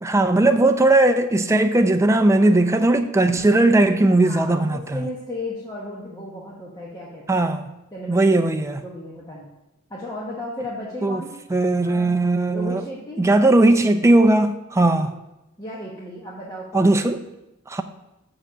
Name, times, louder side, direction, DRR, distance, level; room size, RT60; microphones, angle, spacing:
voice 1, 0.0-5.0 7.3-7.6 8.1-8.8 11.0-11.2 11.5-12.8 13.2-15.1 16.7-17.2 17.7-17.8, right 2 dB, 15° right, 7 dB, 0.4 m, -18 dB
voice 2, 4.2-7.4 7.9-8.3 8.7-9.5 9.9-11.3 11.8-12.2 12.5-13.2 14.9-15.1 15.6-16.9, left 1 dB, 15° left, -5 dB, 1.0 m, -35 dB
6.5 x 4.9 x 6.2 m, 0.94 s
head